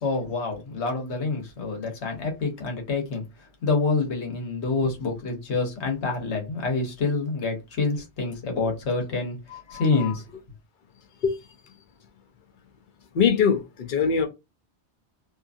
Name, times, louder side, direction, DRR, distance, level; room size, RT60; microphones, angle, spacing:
voice 1, 0.0-3.2 3.6-9.4 9.7-10.2, left 3 dB, 80° left, 1.3 m, -27 dB
voice 2, 9.5-10.1 11.2-11.4 13.1-14.3, left 6 dB, 55° left, 0.7 m, -23 dB
2.8 x 2.5 x 2.3 m
omnidirectional pair, 1.1 m